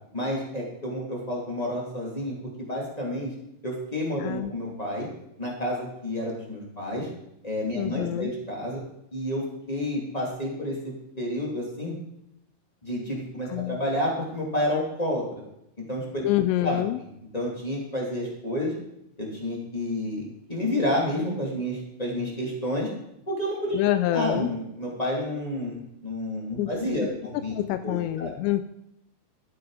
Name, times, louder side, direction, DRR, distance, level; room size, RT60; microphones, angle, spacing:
voice 1, 0.1-3.3 3.6-5.1 5.4-7.1 7.4-8.8 9.1-11.9 12.8-15.4 15.8-16.3 16.6-17.1 17.3-18.7 19.2-22.9 23.3-23.8 24.1-27.5 27.8-28.3, left 1 dB, 35° left, -3 dB, 0.6 m, -30 dB
voice 2, 4.2-4.5 7.7-8.3 13.5-13.8 16.2-17.0 23.7-24.5 26.6-26.7 27.5-28.6, left 14 dB, 90° left, 10 dB, 2.4 m, -26 dB
13.0 x 9.5 x 4.8 m, 0.81 s
omnidirectional pair, 5.6 m